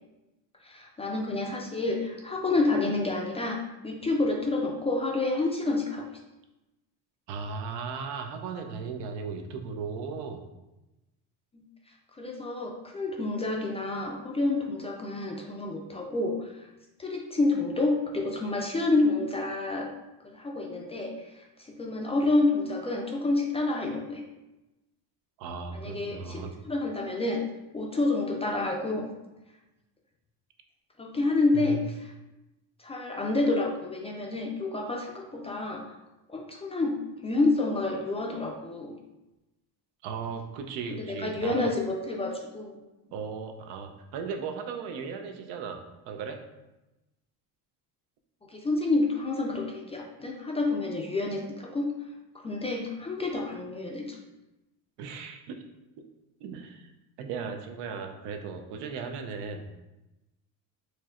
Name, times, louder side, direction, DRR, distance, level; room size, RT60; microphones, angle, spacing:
voice 1, 0.6-6.1 11.5-11.6 12.2-16.5 17.0-19.9 20.2-21.1 21.7-24.2 25.7-27.4 27.7-29.0 31.0-31.8 32.8-35.8 36.3-38.9 40.9-42.8 48.5-51.9 52.4-54.2, left 2 dB, 15° left, 0 dB, 0.3 m, -28 dB
voice 2, 7.3-10.4 25.4-26.5 31.5-31.8 40.0-41.7 43.1-45.8 46.1-46.4 55.0-55.6 56.4-56.9 57.2-59.6, right 5 dB, 85° right, 5 dB, 0.6 m, -36 dB
4.4 x 3.1 x 2.4 m, 1.0 s
cardioid pair, 125°, 40 cm